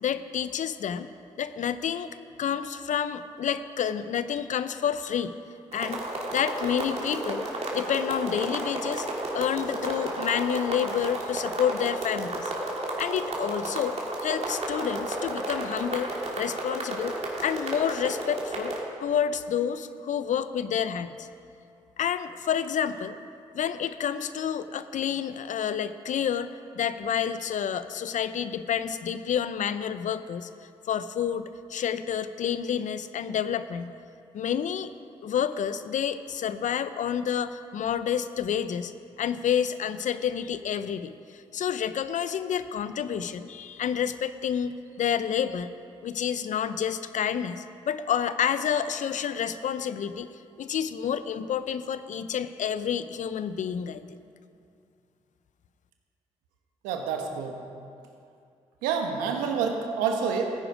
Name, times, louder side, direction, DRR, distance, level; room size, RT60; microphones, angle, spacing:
voice 1, 0.0-1.1 1.4-5.3 5.7-6.0 6.3-9.1 9.3-12.5 13.0-13.9 14.2-17.1 17.4-18.7 19.0-21.3 22.0-23.2 23.5-26.5 26.8-30.5 30.9-33.9 34.3-34.9 35.2-38.9 39.2-45.7 46.0-50.3 50.6-54.0, left 8 dB, 65° left, 12 dB, 0.6 m, -29 dB
sound 1, 5.7-18.8, right 1 dB, 50° right, 2.7 m, -32 dB
voice 2, 56.8-57.6 58.8-60.5, right 6 dB, 85° right, 3 dB, 1.2 m, -28 dB
15.0 x 9.6 x 5.0 m, 2.5 s
hypercardioid pair, 45°, 14 cm